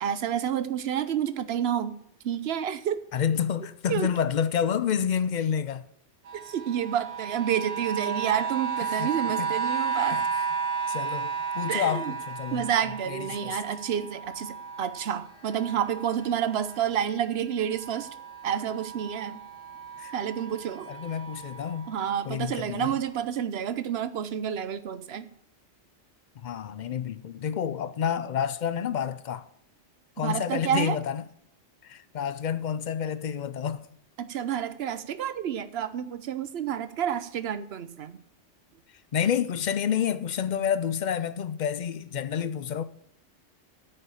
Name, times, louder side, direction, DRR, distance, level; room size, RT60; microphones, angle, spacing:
voice 1, 0.0-1.9 2.2-3.0 3.9-4.1 6.3-10.3 11.7-12.1 12.5-18.1 18.4-19.4 20.1-20.9 21.9-25.3 30.2-31.0 34.2-38.2, right 9 dB, 60° right, 0.9 m, -29 dB
voice 2, 3.1-5.9 8.8-9.1 9.4-9.5 10.1-10.2 10.9-12.7 13.1-13.6 20.0-20.1 20.9-21.9 22.2-22.9 26.4-29.5 30.2-31.2 31.8-33.9 39.1-42.8, left 8 dB, 55° left, 0.5 m, -29 dB
sound 1, 6.3-17.3 17.6-22.2 22.9-23.0, right 6 dB, 85° right, 1.5 m, -34 dB
8.9 x 6.7 x 8.4 m
omnidirectional pair, 1.2 m